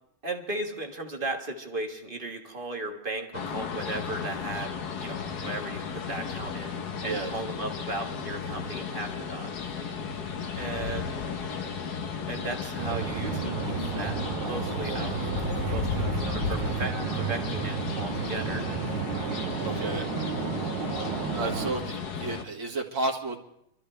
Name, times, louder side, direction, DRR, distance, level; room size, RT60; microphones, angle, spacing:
voice 1, 0.2-9.5 10.6-11.2 12.3-15.2 15.6-18.7, right 2 dB, 25° right, 2 dB, 1.6 m, -36 dB
sound 1, 3.3-22.4, left 6 dB, 55° left, 1.4 m, -34 dB
sound 2, 12.8-21.7, right 8 dB, 75° right, 1.7 m, -32 dB
voice 2, 19.6-20.1 21.3-23.4, right 3 dB, 60° right, 1 dB, 2.6 m, -32 dB
26.5 x 13.5 x 3.3 m, 0.79 s
omnidirectional pair, 2.3 m